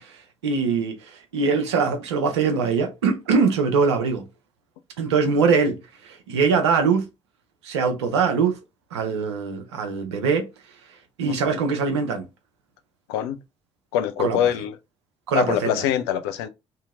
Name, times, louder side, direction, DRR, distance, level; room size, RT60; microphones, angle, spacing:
voice 1, 0.0-4.3 5.0-7.1 7.6-8.6 8.9-12.3 14.2-14.4 15.3-15.8, right 5 dB, 75° right, 0.7 m, -23 dB
voice 2, 11.3-11.6 13.1-13.4 13.9-14.7 15.3-16.5, left 10 dB, 65° left, 0.5 m, -24 dB
2.9 x 2.8 x 3.5 m
figure-of-eight pair, 50°, 15 cm